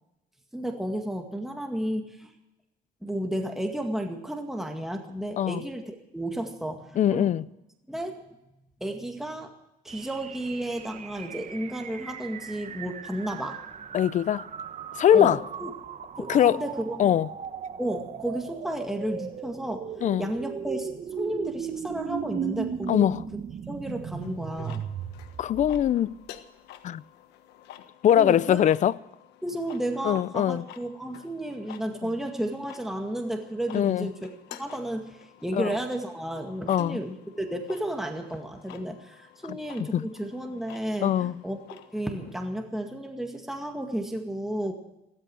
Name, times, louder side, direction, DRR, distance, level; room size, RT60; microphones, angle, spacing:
voice 1, 0.5-2.3 3.0-7.3 7.9-8.3 8.8-9.5 9.8-13.7 15.1-15.7 16.2-17.2 17.8-20.9 21.2-23.1 23.7-24.9 28.2-28.6 29.4-34.3 34.6-44.7, right 1 dB, ahead, 2.0 m, -32 dB
voice 2, 7.0-7.5 13.9-14.5 15.0-15.4 16.3-16.6 17.0-17.3 20.0-20.3 22.9-23.2 25.4-26.2 26.8-27.0 28.0-28.9 30.0-30.6 33.7-34.1 35.5-35.7 36.7-37.0 39.8-40.1 41.0-41.3, left 10 dB, 45° left, 0.5 m, -22 dB
sound 1, 9.9-26.2, right 8 dB, 45° right, 1.1 m, -37 dB
sound 2, 24.2-42.5, left 11 dB, 85° left, 1.3 m, -50 dB
15.5 x 14.0 x 6.3 m
cardioid pair, 110°, 17 cm